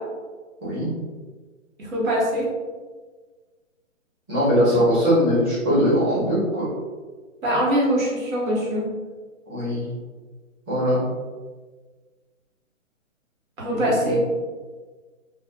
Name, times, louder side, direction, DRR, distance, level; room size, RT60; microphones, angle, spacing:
voice 1, 1.8-2.5 7.4-8.9 13.6-14.2, equal, 80° right, -5 dB, 1.4 m, -23 dB
voice 2, 4.3-6.7 9.5-9.9 10.7-11.0 13.7-14.2, equal, 20° right, -11 dB, 1.1 m, -21 dB
2.6 x 2.5 x 2.4 m, 1.4 s
hypercardioid pair, 160°, 40 cm